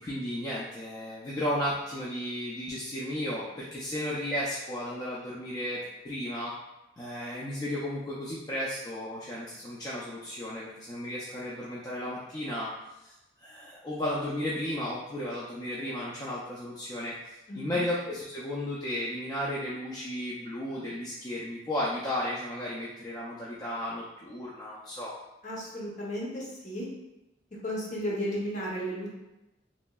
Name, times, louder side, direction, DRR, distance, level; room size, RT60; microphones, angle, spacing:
voice 1, 0.0-6.5 7.0-12.7 13.0-13.1 13.4-25.1, left 1 dB, 20° left, -7 dB, 0.3 m, -34 dB
voice 2, 17.5-17.8 25.4-26.9 27.6-29.1, equal, 45° left, -4 dB, 0.7 m, -34 dB
3.0 x 2.6 x 2.2 m, 0.97 s
head